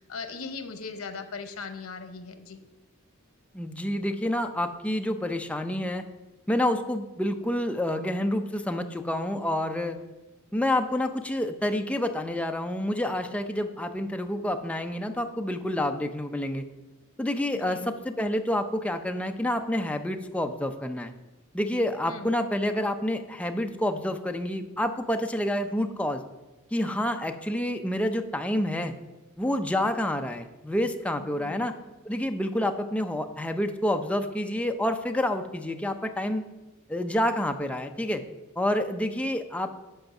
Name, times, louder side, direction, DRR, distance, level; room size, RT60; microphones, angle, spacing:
voice 1, 0.0-2.6 17.5-18.0 22.1-22.4 31.2-31.6, left 4 dB, 85° left, 8 dB, 0.9 m, -39 dB
voice 2, 3.5-6.0 6.5-10.0 10.5-16.6 17.2-21.1 21.5-26.2 26.7-28.9 29.4-31.7 32.1-36.4 36.9-38.2 38.6-39.7, left 1 dB, 5° left, 6 dB, 0.5 m, -28 dB
7.8 x 5.2 x 5.8 m, 1.1 s
head